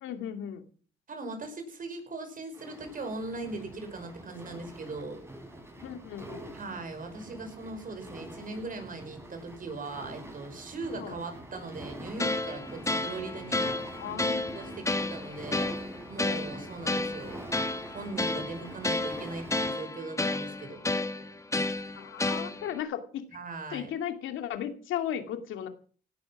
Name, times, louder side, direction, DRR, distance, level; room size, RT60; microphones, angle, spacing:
voice 1, 0.0-0.6 5.8-6.5 11.0-11.2 14.0-14.7 16.8-16.9 22.0-23.3 23.7-25.7, left 10 dB, 85° left, 7 dB, 2.5 m, -36 dB
voice 2, 1.1-5.2 6.5-13.7 14.5-15.8 16.1-17.4 17.9-20.8 23.3-23.9, right 3 dB, 45° right, 7 dB, 5.5 m, -39 dB
sound 1, 2.5-19.7, right 1 dB, 10° right, 6.5 m, -45 dB
sound 2, 12.2-22.8, left 2 dB, 15° left, 1.4 m, -32 dB
17.5 x 12.0 x 6.0 m, 0.43 s
cardioid pair, 90°, 20 cm